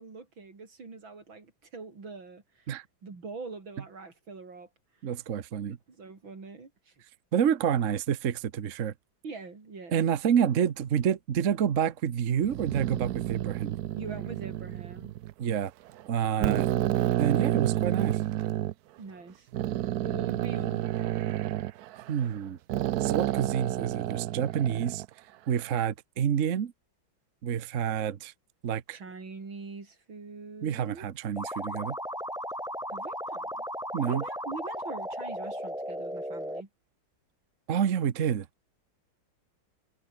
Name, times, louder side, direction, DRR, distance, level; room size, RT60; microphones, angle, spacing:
voice 1, 0.0-2.7 3.0-4.7 5.7-6.9 9.2-10.0 13.9-15.1 19.0-19.5 20.0-21.3 28.9-31.1 32.9-33.6 34.0-36.7, right 4 dB, 85° right, 4.8 m, -43 dB
voice 2, 5.0-5.8 7.3-8.9 9.9-13.8 15.4-15.7 16.1-16.7 17.2-18.2 22.1-22.6 23.0-25.0 25.5-26.7 27.4-28.3 28.6-29.0 30.6-32.0 33.9-34.2 37.7-38.5, right 8 dB, 45° right, 1.2 m, -28 dB
sound 1, 12.4-15.3 15.9-16.0 16.4-18.7 19.5-22.4 22.7-25.1, right 14 dB, 70° right, 0.9 m, -30 dB
sound 2, 31.4-36.6, equal, ahead, 6.6 m, -36 dB
omnidirectional pair, 2.1 m